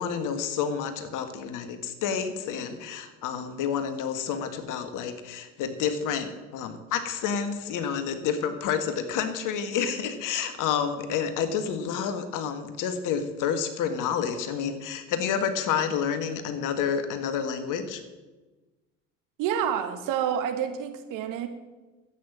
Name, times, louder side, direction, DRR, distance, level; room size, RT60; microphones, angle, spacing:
voice 1, 0.0-18.0, left 7 dB, 55° left, 8 dB, 1.8 m, -29 dB
voice 2, 19.4-21.5, right 9 dB, 60° right, 8 dB, 1.8 m, -28 dB
12.5 x 8.7 x 7.4 m, 1.2 s
hypercardioid pair, 70°, 37 cm